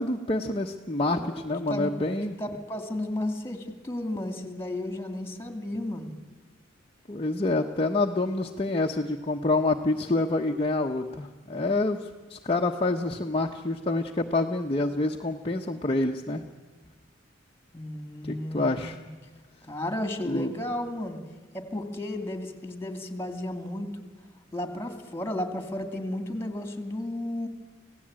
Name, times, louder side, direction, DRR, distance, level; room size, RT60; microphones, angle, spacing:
voice 1, 0.0-2.4 7.1-16.4 18.2-19.0 20.2-20.5, left 2 dB, 30° left, 2 dB, 1.0 m, -27 dB
voice 2, 2.4-6.1 17.7-19.1 19.7-21.2 21.5-23.9 24.5-27.5, left 1 dB, 15° left, 7 dB, 2.5 m, -33 dB
26.5 x 17.0 x 8.8 m, 1.4 s
head